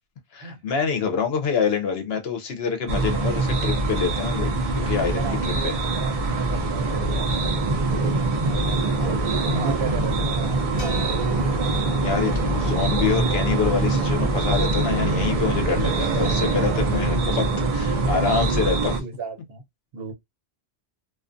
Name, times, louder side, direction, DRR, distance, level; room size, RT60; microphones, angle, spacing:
voice 1, 0.3-5.8 12.0-19.0, left 6 dB, 70° left, 0.8 m, -26 dB
sound 1, 2.9-19.0, right 2 dB, 50° right, 0.5 m, -23 dB
voice 2, 5.0-11.9 19.0-19.6 19.9-20.1, right 3 dB, 65° right, 1.0 m, -34 dB
sound 2, 10.8-15.1, left 1 dB, 40° left, 1.3 m, -43 dB
2.4 x 2.3 x 2.5 m
omnidirectional pair, 1.1 m